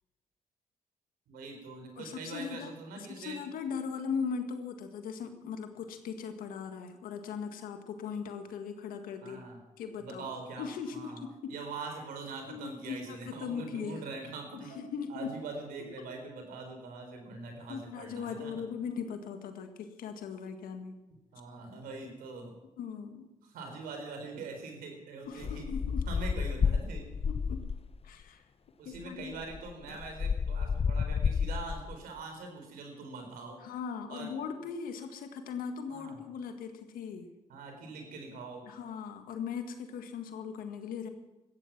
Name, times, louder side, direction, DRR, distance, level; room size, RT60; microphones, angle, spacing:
voice 1, 1.3-3.4 9.2-9.6 10.0-11.2 11.5-14.8 15.1-18.5 21.3-22.5 23.4-25.6 26.1-27.0 28.8-33.6 34.1-34.3 35.9-36.2 37.5-38.6, right 3 dB, 80° right, 4 dB, 4.1 m, -43 dB
voice 2, 2.0-9.5 9.8-10.3 10.6-11.5 12.5-14.1 14.5-15.3 16.0-16.1 17.7-21.0 22.8-23.3 25.3-26.0 27.2-27.6 28.0-28.4 28.8-29.4 33.6-37.3 38.6-41.1, left 6 dB, 80° left, 7 dB, 1.7 m, -39 dB
sound 1, 25.4-28.0 28.9-29.0 29.3-32.0, left 6 dB, 45° left, 0.8 m, -31 dB
17.0 x 13.5 x 6.0 m, 1.0 s
supercardioid pair, 50°, 15 cm